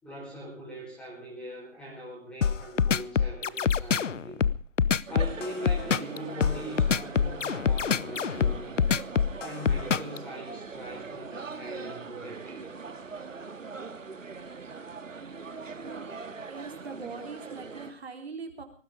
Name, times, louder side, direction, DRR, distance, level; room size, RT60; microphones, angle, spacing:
voice 1, 0.0-4.4 5.1-8.9 9.4-12.6, equal, ahead, -4 dB, 4.4 m, -41 dB
sound 1, 2.4-10.2, left 6 dB, 70° left, 0.9 m, -25 dB
sound 2, 5.1-17.9, right 4 dB, 70° right, 2.6 m, -41 dB
voice 2, 16.5-18.6, right 4 dB, 50° right, 5 dB, 4.1 m, -41 dB
19.0 x 15.0 x 4.9 m, 0.39 s
hypercardioid pair, 175°, 39 cm